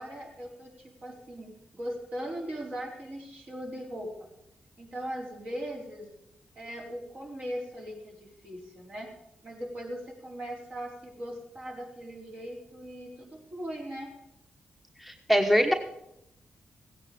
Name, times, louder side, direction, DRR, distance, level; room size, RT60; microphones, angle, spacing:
voice 1, 0.0-4.3 4.8-6.1 6.6-9.1 9.4-14.1, equal, 50° right, -2 dB, 4.3 m, -39 dB
voice 2, 15.0-15.7, equal, 5° right, 4 dB, 1.2 m, -23 dB
16.0 x 9.5 x 5.2 m, 0.84 s
supercardioid pair, 55°, 3 cm